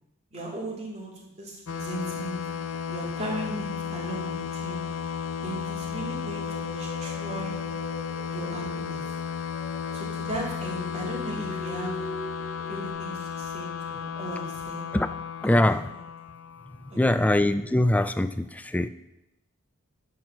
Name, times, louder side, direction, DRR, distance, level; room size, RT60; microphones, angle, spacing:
voice 1, 0.3-2.4 2.9-4.8 5.4-6.5 6.7-7.6 8.3-9.0 9.9-12.0 12.7-14.8 15.4-15.7 16.9-17.3, right 1 dB, 30° right, -3 dB, 2.4 m, -37 dB
sound 1, 1.7-17.1, left 7 dB, 70° left, 0.5 m, -34 dB
sound 2, 6.2-12.9, left 1 dB, 30° left, 2.7 m, -42 dB
voice 2, 15.4-15.9 17.0-18.9, left 1 dB, 5° left, 10 dB, 0.3 m, -23 dB
11.5 x 4.6 x 6.0 m, 0.89 s
head